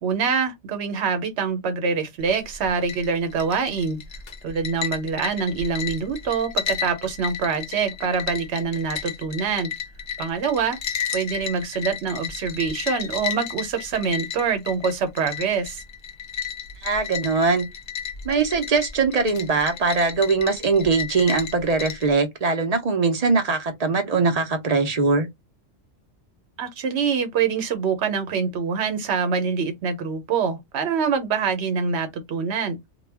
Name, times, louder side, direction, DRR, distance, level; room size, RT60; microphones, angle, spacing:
voice 1, 0.0-4.0 4.4-9.7 10.2-10.8 11.1-15.8 26.6-32.8, right 6 dB, 70° right, 1.0 m, -25 dB
sound 1, 2.2-22.1, left 8 dB, 55° left, 0.6 m, -33 dB
voice 2, 16.8-17.7 18.2-25.3, right 4 dB, 45° right, 0.5 m, -21 dB
2.2 x 2.1 x 3.2 m
omnidirectional pair, 1.2 m